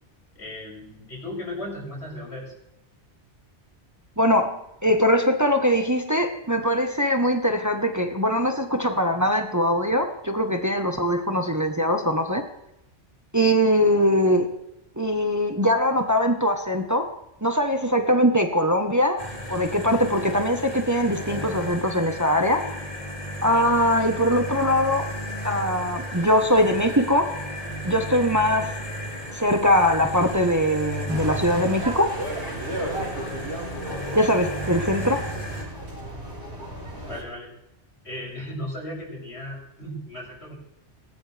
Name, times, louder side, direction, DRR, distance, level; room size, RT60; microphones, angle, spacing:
voice 1, 0.3-2.5 37.1-37.5 38.0-40.5, left 1 dB, 80° left, -4 dB, 8.0 m, -36 dB
voice 2, 4.2-12.4 13.3-14.5 15.0-17.1 17.4-19.2 19.5-22.6 23.4-25.0 25.4-27.3 27.8-28.7 29.3-32.1 34.1-35.3, equal, 15° right, 4 dB, 1.2 m, -22 dB
sound 1, 19.2-35.6, equal, 50° left, 3.7 m, -34 dB
sound 2, 31.1-37.2, right 1 dB, 85° right, 5.7 m, -34 dB
19.0 x 19.0 x 3.5 m, 0.87 s
omnidirectional pair, 1.1 m